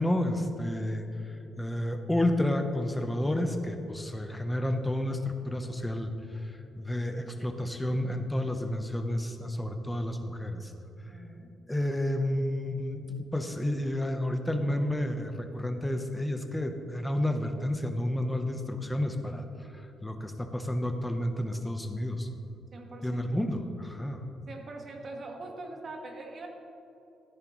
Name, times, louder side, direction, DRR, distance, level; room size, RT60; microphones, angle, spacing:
voice 1, 0.0-10.7 11.7-22.3 23.0-24.2, left 1 dB, 10° left, 6 dB, 0.9 m, -31 dB
voice 2, 11.1-11.6 22.7-23.4 24.5-26.5, right 2 dB, 45° right, 2 dB, 1.6 m, -43 dB
13.5 x 10.0 x 3.1 m, 2.9 s
cardioid pair, 90°, 0 cm